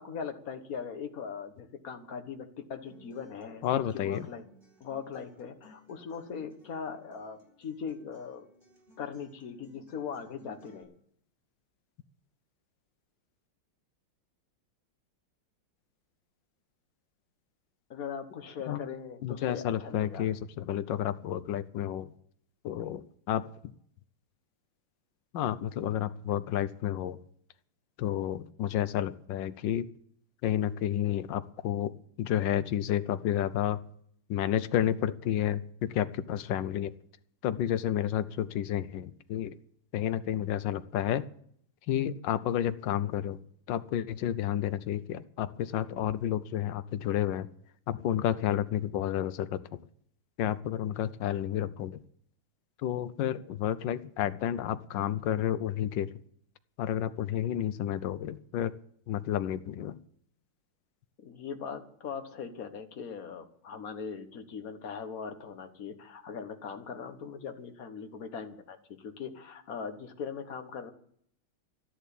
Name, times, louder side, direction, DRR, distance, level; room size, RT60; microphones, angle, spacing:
voice 1, 0.0-4.4 4.8-8.4 9.0-10.9 17.9-20.3 61.2-70.9, left 6 dB, 45° left, 7 dB, 1.5 m, -40 dB
Acoustic guitar, 2.8-10.8, equal, 25° right, 4.8 m, -60 dB
voice 2, 3.6-4.3 18.7-18.8 19.2-22.1 22.6-23.0 23.3-23.5 25.3-27.2 28.0-29.9 30.4-31.9 32.2-33.8 34.3-36.9 37.4-39.6 39.9-41.2 41.9-43.4 43.7-47.5 47.9-49.8 50.4-52.0 52.8-56.1 56.8-58.7 59.1-60.0, left 11 dB, 70° left, 13 dB, 1.3 m, -30 dB
12.5 x 11.0 x 8.4 m, 0.65 s
omnidirectional pair, 2.3 m